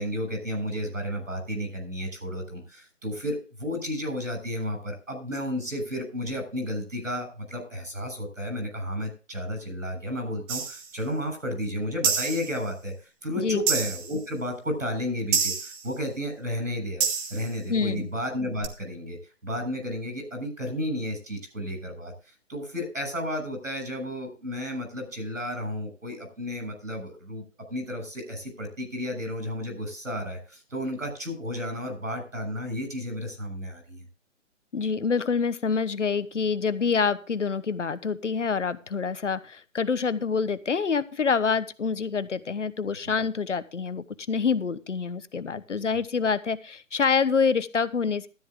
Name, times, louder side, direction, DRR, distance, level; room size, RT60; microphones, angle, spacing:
voice 1, 0.0-22.1 22.5-27.4 27.7-34.1, equal, 85° right, 6 dB, 7.2 m, -32 dB
sound 1, 10.5-10.9 12.0-12.6 13.7-14.1 15.3-15.9 17.0-17.5 18.6-18.7, right 6 dB, 15° right, 1.3 m, -27 dB
voice 2, 17.7-18.1 34.7-48.3, left 5 dB, 70° left, 15 dB, 1.2 m, -26 dB
13.0 x 10.5 x 3.7 m, 0.34 s
figure-of-eight pair, 140°, 38 cm